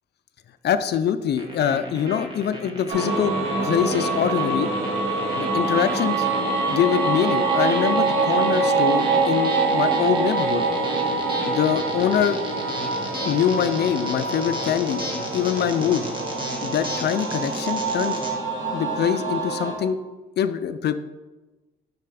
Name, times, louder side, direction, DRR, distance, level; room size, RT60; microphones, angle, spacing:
voice 1, 0.6-3.4 3.6-4.7 5.4-10.6 11.4-12.4 13.2-15.0 15.3-16.1 16.6-18.2 18.7-20.0 20.4-21.0, left 9 dB, 55° left, 12 dB, 0.4 m, -24 dB
sound 1, 1.4-18.3, equal, 25° right, 1.5 m, -35 dB
sound 2, 2.9-19.7, right 3 dB, 90° right, 1.4 m, -25 dB
6.7 x 4.2 x 4.9 m, 1.1 s
cardioid pair, 90°, 20 cm